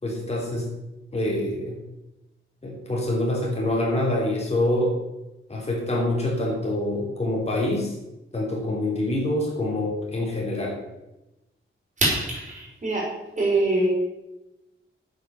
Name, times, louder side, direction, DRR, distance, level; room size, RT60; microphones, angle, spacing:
voice 1, 0.0-0.7 1.1-1.8 2.6-4.9 5.5-7.9 8.3-10.8, left 1 dB, 30° left, -2 dB, 3.4 m, -25 dB
voice 2, 12.0-13.1 13.4-13.9, right 2 dB, 35° right, -4 dB, 5.0 m, -23 dB
9.2 x 8.0 x 6.9 m, 0.98 s
wide cardioid pair, 165°, 21 cm